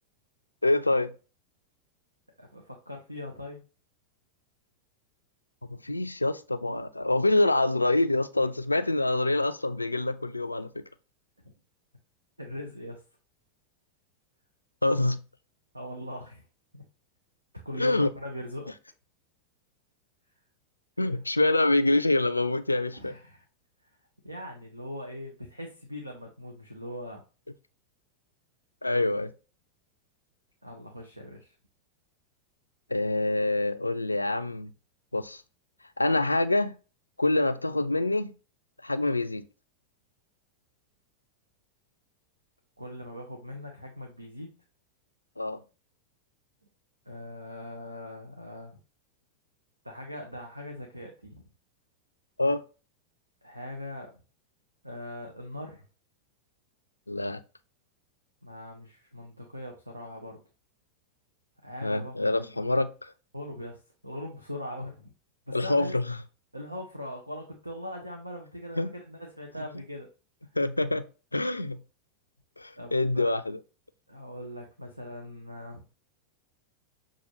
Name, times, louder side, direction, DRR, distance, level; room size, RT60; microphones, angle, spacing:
voice 1, 0.6-1.1 5.7-10.8 14.8-15.2 17.8-18.1 21.0-23.1 28.8-29.3 32.9-34.7 35.1-35.4 36.0-36.7 37.2-38.3 38.8-39.4 45.4-45.6 52.4-52.6 57.1-57.4 61.8-63.1 65.5-66.2 68.8-68.9 69.6-69.7 70.6-71.0 71.3-71.8 72.6-73.6, left 2 dB, 85° left, 0.3 m, -26 dB
voice 2, 2.4-3.6 12.4-13.0 15.7-16.4 16.7-16.8 17.6-18.7 21.0-21.2 23.0-23.4 24.2-27.2 30.6-31.5 42.8-44.6 47.1-48.8 49.8-51.4 53.4-54.1 54.8-55.9 58.4-60.4 61.6-62.5 63.3-65.1 65.5-66.0 66.5-70.1 72.7-73.3 74.1-76.0, left 1 dB, 85° right, 0.7 m, -41 dB
6.6 x 2.5 x 2.8 m
figure-of-eight pair, 90°, 0 cm